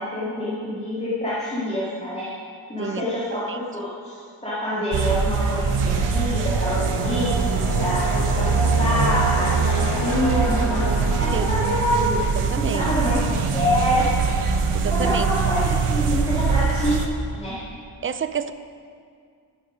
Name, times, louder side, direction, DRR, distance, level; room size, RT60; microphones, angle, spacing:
voice 1, 0.0-2.3 2.7-4.1 4.4-10.8 11.2-14.1 14.9-17.0 17.3-17.6, left 1 dB, 15° left, -10 dB, 2.3 m, -26 dB
voice 2, 2.8-3.2 3.5-3.6 11.3-12.0 12.5-12.9 14.7-15.3 18.0-18.5, right 7 dB, 25° right, 11 dB, 0.4 m, -29 dB
sound 1, 4.9-17.1, right 5 dB, 90° right, 1.0 m, -23 dB
sound 2, 5.3-12.9, equal, 50° left, 1.7 m, -30 dB
11.5 x 9.2 x 5.1 m, 2.2 s
wide cardioid pair, 115°, 50 cm